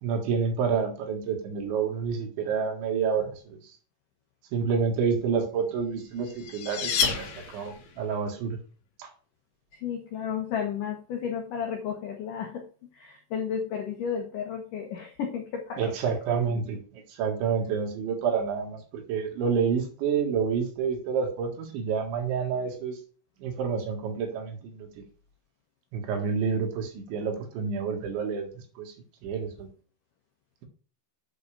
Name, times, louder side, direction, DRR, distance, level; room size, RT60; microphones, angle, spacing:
voice 1, 0.0-3.8 4.5-8.6 9.0-9.1 15.8-23.0 23.4-25.0 25.9-28.9 29.2-29.7, right 6 dB, 70° right, 3 dB, 4.0 m, -29 dB
sound 1, 5.9-8.0, left 6 dB, 60° left, 2.6 m, -30 dB
voice 2, 9.7-15.9 16.5-16.6, left 7 dB, 80° left, 2 dB, 1.8 m, -33 dB
8.1 x 5.4 x 6.7 m, 0.39 s
omnidirectional pair, 5.6 m